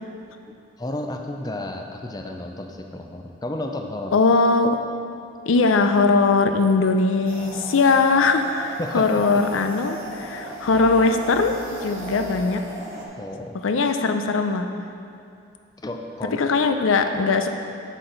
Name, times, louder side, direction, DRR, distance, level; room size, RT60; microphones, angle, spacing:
voice 1, 0.5-4.1 8.8-9.4 13.2-13.6 15.8-16.4, left 1 dB, 20° left, 3 dB, 0.4 m, -32 dB
voice 2, 4.1-4.8 5.5-12.6 13.6-14.7 16.3-17.5, left 4 dB, 75° left, 7 dB, 0.5 m, -20 dB
sound 1, 7.2-13.1, right 1 dB, 45° right, 1.2 m, -37 dB
7.7 x 6.3 x 3.9 m, 2.5 s
head